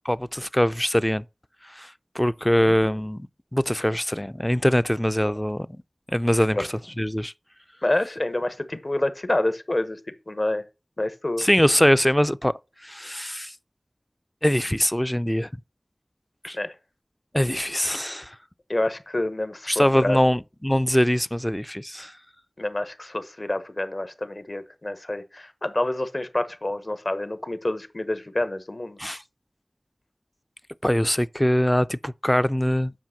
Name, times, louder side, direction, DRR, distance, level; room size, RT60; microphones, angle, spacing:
voice 1, 0.1-1.2 1.6-3.3 3.5-5.8 6.1-6.7 7.0-7.3 11.4-12.5 12.8-13.5 14.4-15.5 16.4-16.6 17.3-18.4 19.7-22.1 29.0-29.2 30.8-32.9, equal, 10° left, 0.4 m, -22 dB
voice 2, 7.8-10.0 10.3-10.6 11.0-11.5 16.5-16.7 18.7-20.2 22.6-29.0, left 1 dB, 55° left, 1.0 m, -27 dB
7.4 x 5.7 x 5.7 m
wide cardioid pair, 40°, 0 cm